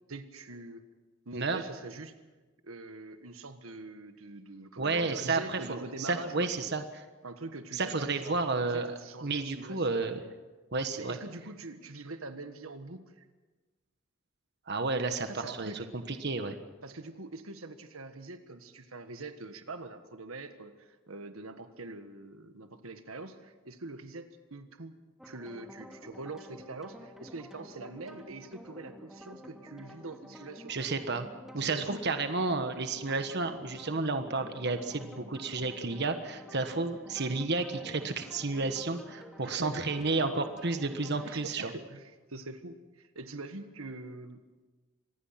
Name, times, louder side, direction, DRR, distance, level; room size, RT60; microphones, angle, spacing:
voice 1, 0.1-0.8 1.2-2.1 2.6-6.5 7.2-10.0 10.9-13.2 15.2-15.9 16.8-24.9 25.2-30.7 31.6-32.0 39.4-40.3 41.2-44.4, right 2 dB, 90° right, 8 dB, 1.5 m, -44 dB
voice 2, 4.8-7.0 7.7-8.9 9.2-10.2 10.7-11.2 14.7-16.5 30.7-31.3 31.5-41.7, right 3 dB, 55° right, 8 dB, 1.4 m, -31 dB
sound 1, 25.2-41.3, equal, ahead, 2.7 m, -50 dB
26.0 x 19.5 x 5.9 m, 1.3 s
head